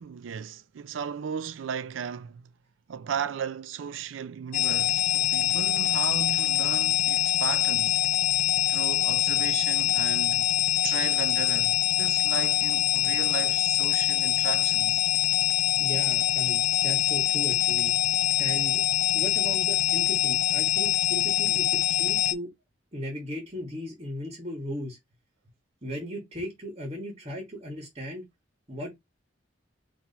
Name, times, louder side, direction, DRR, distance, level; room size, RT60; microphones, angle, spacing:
voice 1, 0.0-2.5 2.9-8.0 8.7-10.5 10.8-15.0, right 7 dB, 80° right, 0.4 m, -35 dB
sound 1, 4.5-22.3, left 12 dB, 45° left, 0.6 m, -24 dB
voice 2, 15.8-17.9 18.4-18.8 19.1-22.5 22.9-25.0 25.8-28.2 28.7-29.0, equal, 30° right, 1.4 m, -36 dB
4.1 x 2.9 x 4.0 m
head